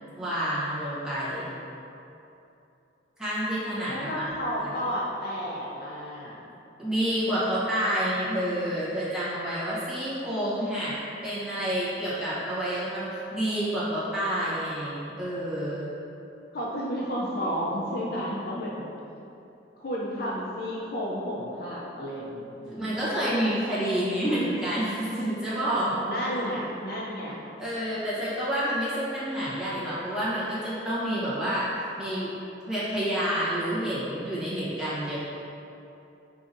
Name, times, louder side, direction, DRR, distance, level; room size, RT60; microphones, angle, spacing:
voice 1, 0.2-1.5 3.2-4.2 6.8-10.9 11.2-15.9 22.7-25.9 27.6-31.7 32.0-32.3 32.7-35.2, equal, 5° right, -12 dB, 0.9 m, -28 dB
voice 2, 3.9-6.4 16.5-18.8 19.8-22.7 26.0-27.4, equal, 55° left, -5 dB, 0.4 m, -32 dB
4.7 x 2.6 x 2.6 m, 2.8 s
head